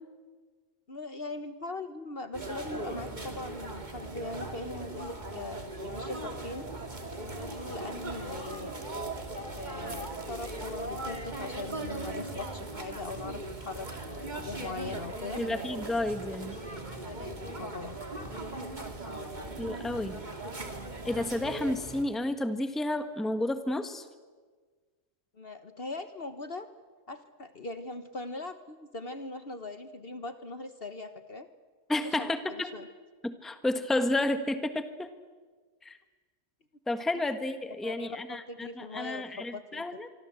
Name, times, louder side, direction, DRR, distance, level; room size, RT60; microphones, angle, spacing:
voice 1, 0.9-6.7 7.3-8.7 9.6-15.4 17.0-18.0 25.3-26.7 27.1-31.5 32.2-32.3 32.7-32.9 37.8-39.8, left 3 dB, 45° left, 10 dB, 1.3 m, -40 dB
sound 1, 2.3-22.0, right 2 dB, 30° right, 2.8 m, -39 dB
voice 2, 15.4-16.5 19.6-20.2 21.0-24.1 31.9-32.7 33.2-35.1 35.8-36.0 36.9-40.1, left 1 dB, ahead, 9 dB, 1.3 m, -31 dB
25.0 x 24.5 x 8.0 m, 1.5 s
omnidirectional pair, 1.5 m